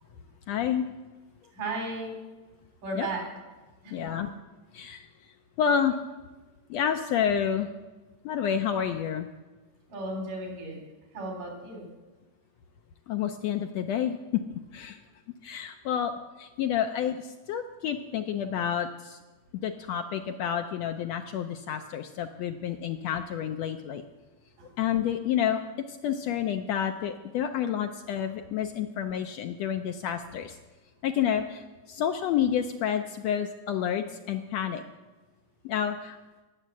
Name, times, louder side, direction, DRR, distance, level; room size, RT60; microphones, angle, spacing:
voice 1, 0.5-0.8 3.0-3.1 3.9-4.3 4.7-5.1 5.6-6.0 6.7-7.7 8.2-9.3 13.1-14.4 14.7-15.0 15.4-16.1 16.4-19.2 19.6-24.0 24.8-25.6 25.9-30.6 31.0-34.8 35.6-36.2, left 9 dB, 75° left, 6 dB, 1.6 m, -29 dB
voice 2, 1.5-2.2 2.8-3.2 3.8-4.2 9.9-10.8 11.1-11.8 24.6-24.7, right 2 dB, 85° right, 1 dB, 5.2 m, -35 dB
18.0 x 8.1 x 7.5 m, 1.2 s
omnidirectional pair, 3.6 m